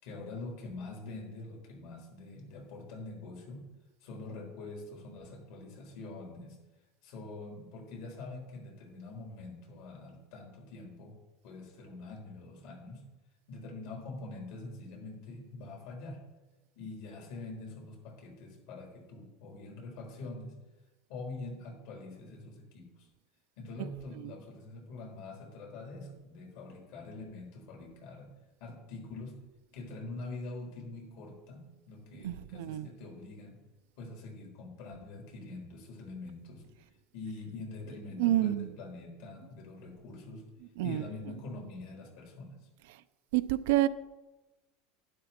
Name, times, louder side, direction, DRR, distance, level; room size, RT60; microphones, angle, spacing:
voice 1, 0.0-3.7 4.0-6.6 7.0-11.1 11.4-13.0 13.5-16.2 16.8-20.6 21.1-23.1 23.6-28.3 28.6-29.4 29.7-33.6 34.0-36.7 37.1-40.4 40.8-42.7, left 2 dB, 60° left, 0 dB, 4.1 m, -44 dB
voice 2, 32.2-32.9 38.2-38.7 40.8-41.0 43.3-43.9, right 15 dB, 75° right, 13 dB, 0.5 m, -28 dB
12.0 x 10.5 x 4.4 m, 1.1 s
supercardioid pair, 155°, 0 cm